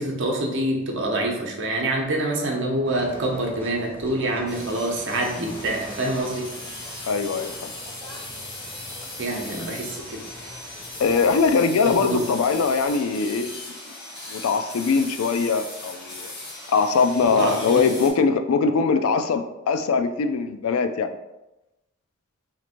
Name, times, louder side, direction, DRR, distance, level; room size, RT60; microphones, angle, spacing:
voice 1, 0.0-6.5 9.2-10.2 11.9-12.2 17.2-17.8, right 1 dB, 60° right, 0 dB, 0.8 m, -26 dB
sound 1, 2.8-12.9, equal, 10° left, 0.5 m, -43 dB
sound 2, 4.5-18.1, left 2 dB, 55° left, 1.4 m, -38 dB
voice 2, 7.1-7.7 11.0-13.5 14.3-16.3 16.7-21.2, left 5 dB, 85° left, 8 dB, 0.4 m, -22 dB
2.9 x 2.5 x 4.2 m, 0.98 s
head